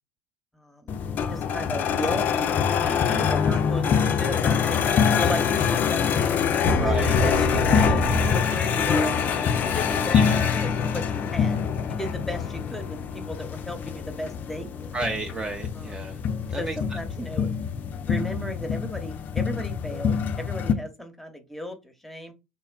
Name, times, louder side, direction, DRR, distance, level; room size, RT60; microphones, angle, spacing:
voice 1, 0.5-1.0 1.3-2.5 3.1-6.4 6.7-10.2 10.5-11.6 11.9-15.0 15.7-16.1 16.6-17.5 18.0-22.3, left 1 dB, 5° left, 5 dB, 0.8 m, -35 dB
sound 1, 0.9-20.7, left 7 dB, 40° left, 0.4 m, -25 dB
voice 2, 2.8-3.3 6.8-7.1 10.1-10.6 14.9-16.2 16.5-17.0, right 3 dB, 20° right, 4 dB, 0.4 m, -32 dB
sound 2, 6.6-8.8 9.1-9.6, right 1 dB, 70° right, 1.0 m, -26 dB
2.9 x 2.2 x 2.3 m, 0.24 s
hypercardioid pair, 65°, 4 cm